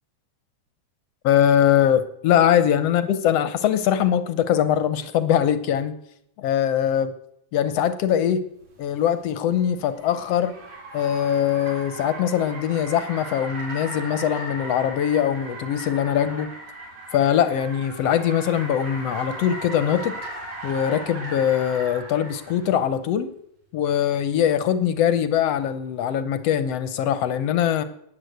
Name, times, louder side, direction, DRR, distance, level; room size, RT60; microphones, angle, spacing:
voice 1, 1.2-5.9 6.4-7.1 7.5-8.4 8.8-10.5 10.9-16.5 17.1-20.1 20.6-23.3 23.7-27.8, left 9 dB, 65° left, 12 dB, 1.8 m, -22 dB
Car, 8.7-22.7, right 1 dB, 60° right, 5.1 m, -37 dB
16.0 x 10.0 x 7.9 m, 0.75 s
omnidirectional pair, 3.4 m